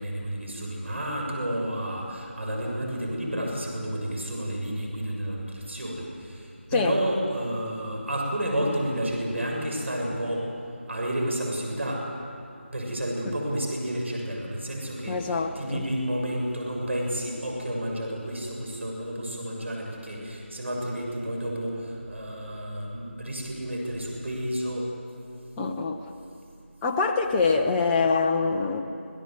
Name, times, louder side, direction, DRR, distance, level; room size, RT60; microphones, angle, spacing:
voice 1, 0.0-10.4 10.9-12.0 12.7-24.9, right 1 dB, 70° right, -1 dB, 6.8 m, -31 dB
voice 2, 15.1-15.8 25.6-26.0 26.8-28.8, left 4 dB, 10° left, 1 dB, 0.7 m, -24 dB
25.5 x 16.5 x 8.0 m, 2.7 s
figure-of-eight pair, 170°, 7 cm